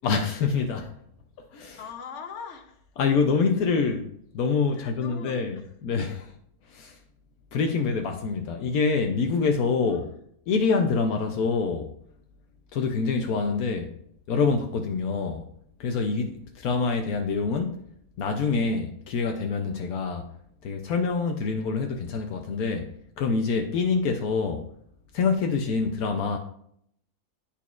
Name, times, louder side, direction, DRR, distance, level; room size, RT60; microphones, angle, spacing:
voice 1, 0.0-0.9 1.5-1.8 3.0-4.1 4.3-6.3 6.7-7.0 7.5-10.1 10.5-11.9 12.7-13.9 14.3-15.4 15.8-17.8 18.2-20.3 20.6-22.9 23.2-24.6 25.1-26.4, left 4 dB, 75° left, 4 dB, 1.1 m, -26 dB
voice 2, 1.8-2.8 4.7-5.6 9.8-10.2, left 6 dB, 55° left, 4 dB, 1.1 m, -42 dB
11.5 x 4.2 x 2.4 m, 0.68 s
omnidirectional pair, 1.6 m